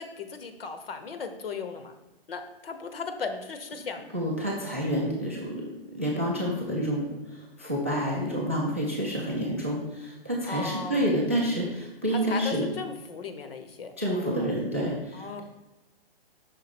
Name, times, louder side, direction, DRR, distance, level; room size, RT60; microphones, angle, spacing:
voice 1, 0.0-1.9 2.3-4.0 10.5-11.1 12.1-14.5 15.1-15.4, left 4 dB, 70° left, 8 dB, 0.9 m, -37 dB
voice 2, 4.1-5.6 5.9-12.7 14.0-15.4, equal, 15° right, -3 dB, 0.4 m, -28 dB
5.7 x 3.5 x 5.8 m, 1.0 s
hypercardioid pair, 180°, 30 cm